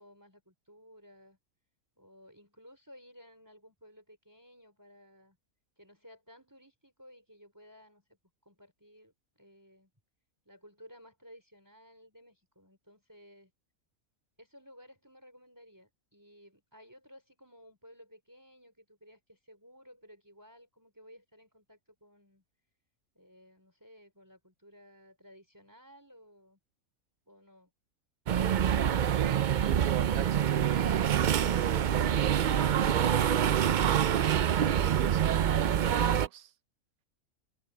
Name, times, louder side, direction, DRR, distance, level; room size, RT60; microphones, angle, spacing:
voice 1, 0.0-1.4 2.0-5.4 5.8-9.9 10.4-13.5 14.4-22.4 23.1-26.6 27.3-27.7, equal, 15° right, 4.2 m, -57 dB
sound 1, 28.3-36.3, right 9 dB, 70° right, 0.4 m, -26 dB
voice 2, 29.1-32.8 33.8-34.2 34.6-36.5, right 11 dB, 85° right, 1.2 m, -39 dB
omnidirectional pair, 1.5 m